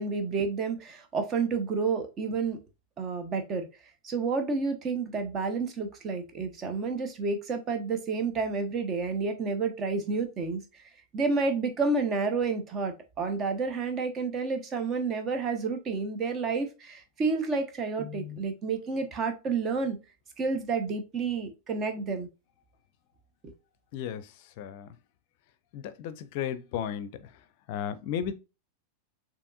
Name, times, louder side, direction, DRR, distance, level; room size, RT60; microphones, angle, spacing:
voice 1, 0.0-2.6 3.0-3.7 4.0-10.6 11.1-20.0 20.4-22.3 23.4-23.5, right 4 dB, 30° right, 1.0 m, -30 dB
voice 2, 23.9-24.2 24.6-24.9 25.7-27.1 27.7-28.3, left 9 dB, 50° left, 0.6 m, -34 dB
6.8 x 3.0 x 2.4 m
figure-of-eight pair, 90°, 0 cm